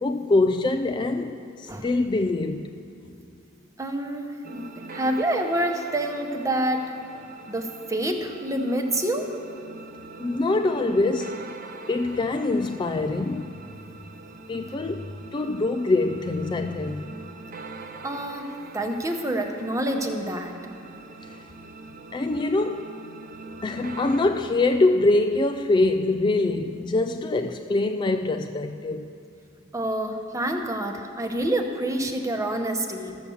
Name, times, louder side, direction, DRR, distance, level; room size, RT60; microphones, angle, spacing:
voice 1, 0.0-2.6 10.2-11.4 11.9-13.5 14.5-15.0 15.3-17.0 22.1-22.9 23.6-29.1, left 2 dB, 25° left, 0.3 m, -24 dB
voice 2, 3.8-6.9 7.5-9.3 18.0-20.6 29.7-33.2, right 1 dB, 15° right, 0.8 m, -27 dB
sound 1, 4.4-24.2, right 3 dB, 45° right, 0.7 m, -43 dB
13.5 x 7.0 x 7.0 m
head